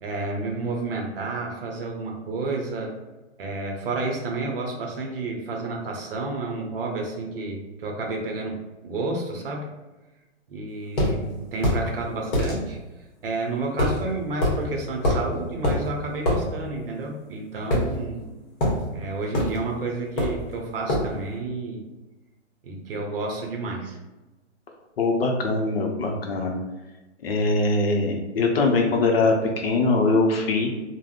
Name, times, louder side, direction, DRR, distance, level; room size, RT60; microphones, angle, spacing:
voice 1, 0.0-2.9 3.4-9.7 10.5-12.8 13.2-18.3 18.9-21.9 22.6-24.0, right 3 dB, 50° right, 1 dB, 0.7 m, -30 dB
sound 1, 11.0-11.1 11.6-11.8 12.3-12.5 13.8-14.0 14.4-14.6 15.0-15.3 15.6-15.8 16.2-16.4 17.7-18.2 18.6-18.8 19.3-19.6 20.2-20.4 20.9-21.1, left 1 dB, 30° left, 1.0 m, -23 dB
voice 2, 25.0-26.5 27.2-30.7, left 3 dB, 55° left, 2 dB, 0.6 m, -22 dB
3.4 x 2.1 x 2.4 m, 1.1 s
hypercardioid pair, 130°, 36 cm